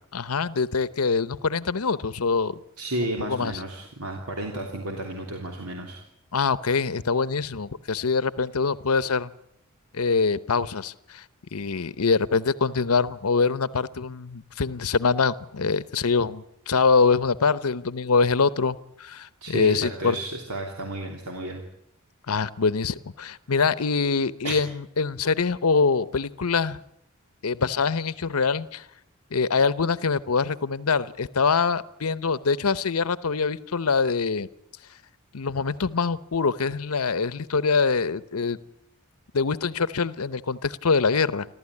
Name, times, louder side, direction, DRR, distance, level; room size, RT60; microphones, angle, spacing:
voice 1, 0.1-2.6 3.3-3.5 6.3-9.3 9.9-11.2 11.5-20.2 22.3-24.7 25.0-26.8 27.4-28.8 29.3-34.5 35.3-38.6 39.3-41.5, left 4 dB, 80° left, 15 dB, 0.8 m, -24 dB
voice 2, 2.8-6.0 19.4-21.6 24.4-24.6, right 1 dB, 80° right, 2 dB, 3.1 m, -32 dB
29.0 x 12.5 x 9.8 m, 0.77 s
head